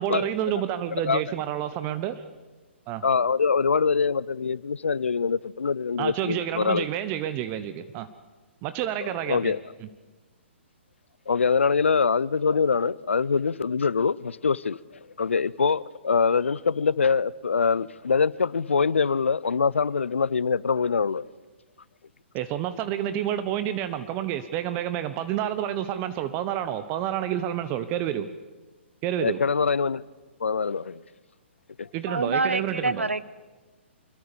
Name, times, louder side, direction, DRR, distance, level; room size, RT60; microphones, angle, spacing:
voice 1, 0.0-2.2 2.9-3.0 6.0-8.1 8.6-9.5 22.3-28.3 29.0-29.4 31.9-33.0, right 11 dB, 30° right, 1.1 m, -29 dB
voice 2, 3.0-6.8 9.3-9.6 11.3-14.8 15.2-21.3 29.2-30.0 30.4-31.0 31.8-31.9, left 5 dB, 75° left, 0.7 m, -24 dB
voice 3, 32.1-33.3, right 3 dB, 90° right, 1.1 m, -26 dB
25.5 x 22.5 x 7.0 m
figure-of-eight pair, 125°, 7 cm